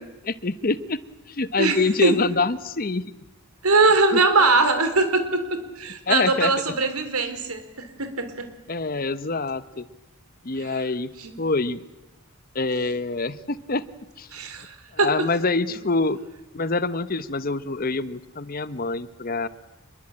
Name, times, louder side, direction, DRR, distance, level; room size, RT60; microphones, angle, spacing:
voice 1, 0.2-1.0 1.3-3.0 4.1-4.2 6.1-6.5 8.7-9.9 10.4-11.1 11.4-11.8 12.5-13.8 14.2-14.3 14.9-16.2 16.5-19.5, left 3 dB, 40° left, 15 dB, 0.9 m, -25 dB
voice 2, 1.6-2.1 3.6-8.5 10.6-10.8 11.2-11.3 14.3-15.3, right 3 dB, 85° right, 9 dB, 3.8 m, -22 dB
26.5 x 22.0 x 8.8 m, 1.0 s
head